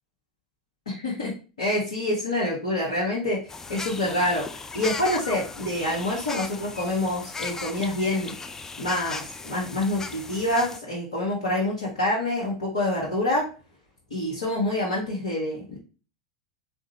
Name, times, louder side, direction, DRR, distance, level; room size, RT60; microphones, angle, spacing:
voice 1, 0.9-3.4 3.7-4.4 4.7-8.3 8.8-13.5 14.1-15.8, left 1 dB, 75° left, -6 dB, 1.2 m, -26 dB
sound 1, 3.5-10.8, left 4 dB, 15° left, 0.3 m, -37 dB
3.7 x 2.6 x 2.9 m, 0.34 s
figure-of-eight pair, 90°, 3 cm